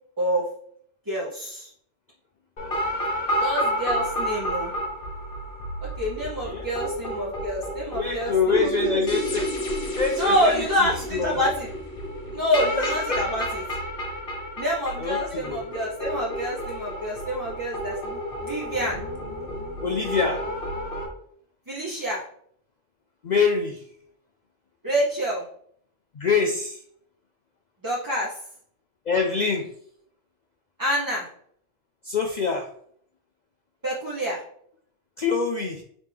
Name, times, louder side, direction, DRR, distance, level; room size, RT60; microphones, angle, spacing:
voice 1, 0.2-0.5 1.1-1.7 3.4-4.7 5.8-9.0 10.2-11.7 12.3-13.6 14.6-19.0 21.7-22.2 24.8-25.5 27.8-28.4 30.8-31.3 33.8-34.4, equal, 25° right, -6 dB, 0.5 m, -27 dB
sound 1, 2.6-21.1, equal, 50° left, 1.1 m, -30 dB
voice 2, 7.9-9.5 9.9-11.4 12.8-13.4 15.0-15.6 19.8-20.4 23.2-23.8 26.2-26.8 29.1-29.7 32.0-32.7 35.2-35.8, left 5 dB, 70° left, 2 dB, 0.4 m, -25 dB
3.9 x 3.3 x 3.3 m, 0.63 s
omnidirectional pair, 1.3 m